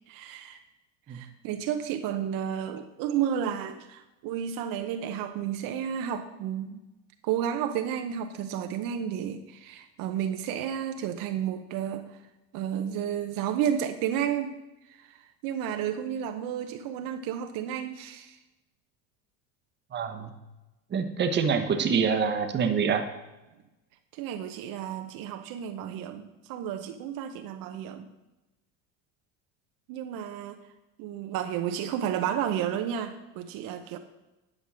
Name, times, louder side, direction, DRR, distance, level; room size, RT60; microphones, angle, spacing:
voice 1, 0.1-0.6 1.1-6.8 7.2-12.2 12.5-14.5 14.9-15.2 15.4-18.4 24.1-28.1 29.9-30.6 31.0-34.0, right 9 dB, 65° right, 7 dB, 0.8 m, -32 dB
voice 2, 19.9-20.3 20.9-23.0, right 6 dB, 30° right, 6 dB, 1.0 m, -26 dB
9.9 x 5.4 x 6.2 m, 1.0 s
cardioid pair, 130°, 36 cm